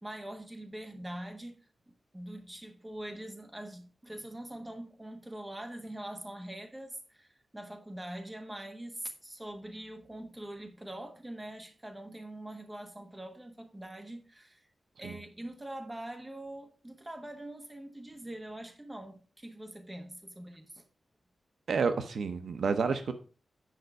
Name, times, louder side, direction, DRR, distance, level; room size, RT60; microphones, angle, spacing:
voice 1, 0.0-1.6 2.1-14.7 15.0-20.9, right 1 dB, 15° right, 1.3 m, -43 dB
voice 2, 21.7-23.1, right 5 dB, 75° right, 0.7 m, -30 dB
9.3 x 5.1 x 4.6 m
wide cardioid pair, 140°, 0 cm